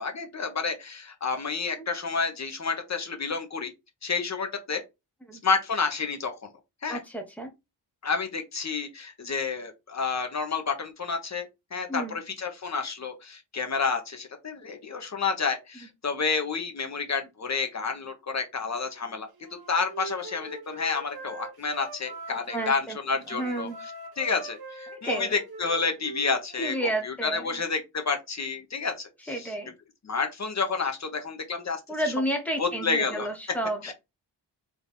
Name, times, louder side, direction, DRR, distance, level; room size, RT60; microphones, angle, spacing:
voice 1, 0.0-3.7 4.0-4.8 5.4-6.3 6.8-7.0 8.0-11.4 11.7-23.7 24.2-29.5 30.0-31.8 32.6-33.3 33.8-33.9, left 5 dB, 40° left, 1.1 m, -30 dB
voice 2, 6.9-7.5 11.9-12.2 22.3-23.0 23.3-23.8 25.0-25.3 26.6-27.5 29.3-29.7 31.9-33.9, right 1 dB, 5° left, 1.1 m, -31 dB
Wind instrument woodwind instrument, 19.4-22.8 23.2-26.9, right 2 dB, 60° right, 1.1 m, -42 dB
3.5 x 3.3 x 4.1 m
wide cardioid pair, 115°, 43 cm